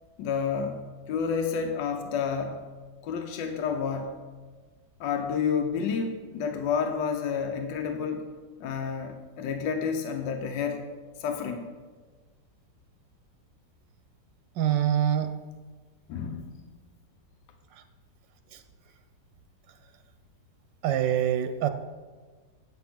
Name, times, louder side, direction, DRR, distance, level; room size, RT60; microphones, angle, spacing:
voice 1, 0.2-2.7 3.0-4.2 5.0-8.3 8.6-10.9 11.2-11.7 16.1-16.5, left 6 dB, 85° left, 5 dB, 1.4 m, -30 dB
voice 2, 14.6-15.3 18.5-18.6 20.8-21.7, right 10 dB, 90° right, 9 dB, 1.3 m, -25 dB
8.4 x 6.0 x 6.0 m, 1.4 s
omnidirectional pair, 1.9 m